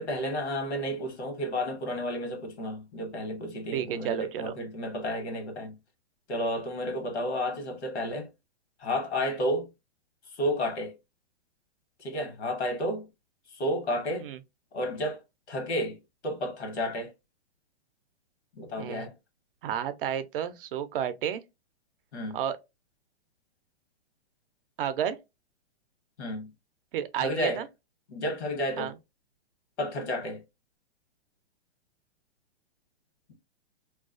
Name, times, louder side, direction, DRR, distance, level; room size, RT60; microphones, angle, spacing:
voice 1, 0.0-5.8 6.3-8.3 8.8-9.7 10.3-10.9 12.0-13.1 13.5-14.3 14.7-15.2 15.5-17.1 18.6-19.1 22.1-22.4 26.2-26.5 27.2-27.6 28.1-28.9 29.8-30.4, equal, 90° left, 1.0 m, -31 dB
voice 2, 3.7-4.5 14.2-14.4 18.8-19.0 19.6-21.4 22.3-22.6 24.8-25.2 26.9-27.7 28.8-28.9, right 9 dB, 55° right, 0.5 m, -31 dB
2.3 x 2.3 x 2.3 m
hypercardioid pair, 140°, 33 cm